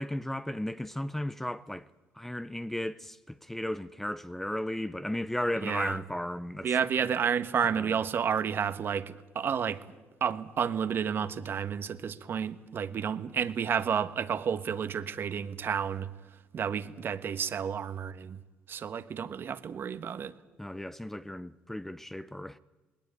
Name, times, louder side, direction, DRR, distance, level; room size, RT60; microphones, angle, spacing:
voice 1, 0.0-1.9 2.1-6.7 7.7-8.0 20.6-22.6, left 1 dB, 5° left, 0.7 m, -35 dB
voice 2, 5.6-5.9 6.6-9.8 10.2-16.1 16.5-18.4 18.7-20.3, right 7 dB, 50° right, 1.4 m, -31 dB
19.5 x 18.0 x 9.4 m
supercardioid pair, 85°, 5 cm